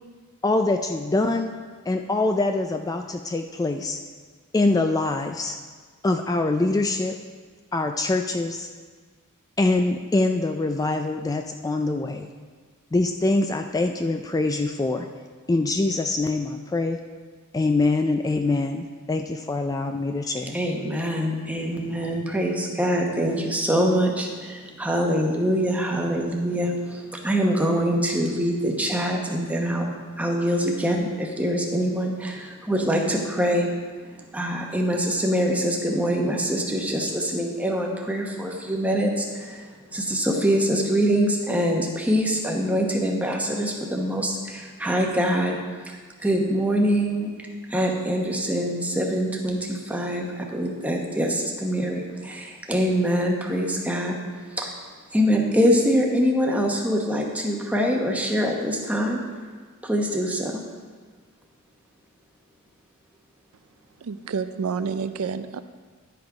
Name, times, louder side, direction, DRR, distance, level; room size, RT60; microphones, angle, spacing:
voice 1, 0.4-1.5 1.9-4.0 4.5-5.6 6.0-7.2 7.7-8.7 9.6-12.3 12.9-15.1 15.5-17.0 17.5-20.6, left 2 dB, 15° left, 5 dB, 0.3 m, -24 dB
voice 2, 20.5-29.9 30.2-33.7 34.3-45.6 45.8-47.3 47.7-54.2 54.5-54.7 55.1-59.2 59.8-60.6, equal, 5° right, 0 dB, 1.0 m, -24 dB
voice 3, 64.0-65.6, right 5 dB, 70° right, 11 dB, 0.4 m, -29 dB
10.5 x 5.9 x 4.9 m, 1.5 s
head